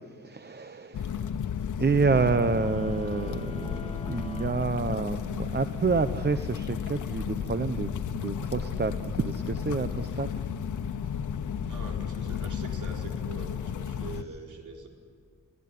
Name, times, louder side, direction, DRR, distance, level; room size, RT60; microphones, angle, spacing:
voice 1, 0.1-1.3 1.8-10.3, right 4 dB, 35° right, 10 dB, 1.0 m, -28 dB
sound 1, 0.9-14.2, left 8 dB, 80° left, 1.1 m, -33 dB
sound 2, 2.5-5.5, left 1 dB, 20° left, 1.3 m, -46 dB
voice 2, 11.7-14.9, right 4 dB, 75° right, 1 dB, 4.4 m, -43 dB
28.0 x 16.5 x 9.7 m, 2.2 s
cardioid pair, 80°, 30 cm